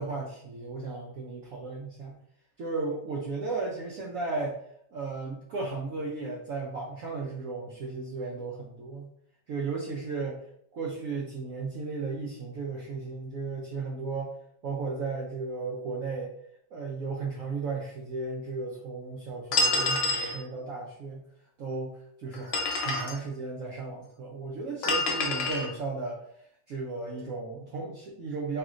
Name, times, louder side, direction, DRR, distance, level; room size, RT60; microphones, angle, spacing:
voice 1, 0.0-2.1 2.6-4.6 4.9-9.1 9.5-10.4 10.7-14.3 14.6-16.3 16.7-21.2 21.6-22.5 22.8-26.2 26.7-28.6, right 3 dB, 80° right, -2 dB, 0.7 m, -35 dB
sound 1, 19.5-20.4 22.3-23.2 24.8-25.7, left 2 dB, 75° left, 1.3 m, -27 dB
3.1 x 2.9 x 2.4 m, 0.68 s
omnidirectional pair, 2.0 m